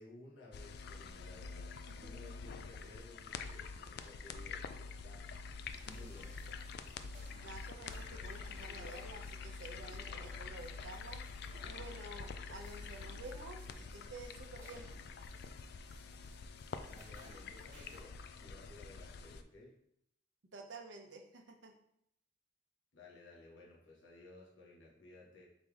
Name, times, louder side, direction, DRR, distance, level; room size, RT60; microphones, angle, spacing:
voice 1, 0.0-5.5 5.8-6.4 16.8-19.7 22.9-25.4, left 2 dB, 80° left, -4 dB, 1.2 m, -57 dB
sound 1, 0.5-19.4, left 4 dB, 60° left, 0.3 m, -47 dB
sound 2, 5.6-18.0, right 1 dB, 45° right, 1.4 m, -61 dB
voice 2, 7.4-11.2 11.6-14.9 20.5-21.7, right 2 dB, 75° right, 4 dB, 0.7 m, -51 dB
4.0 x 3.3 x 3.7 m, 0.75 s
head